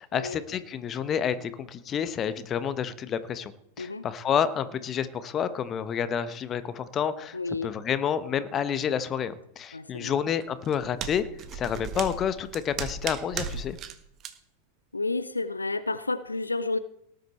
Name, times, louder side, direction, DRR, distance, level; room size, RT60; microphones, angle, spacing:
voice 1, 0.0-3.5 3.8-7.4 7.6-11.3 11.5-13.8, left 8 dB, 25° left, 13 dB, 1.1 m, -29 dB
voice 2, 7.3-7.7 9.7-10.1 14.9-16.8, left 3 dB, 80° left, 14 dB, 0.6 m, -30 dB
sound 1, 10.4-13.9 14.2-14.3, right 7 dB, 35° right, 1.5 m, -36 dB
18.5 x 10.5 x 4.4 m, 0.76 s
figure-of-eight pair, 90°, 0 cm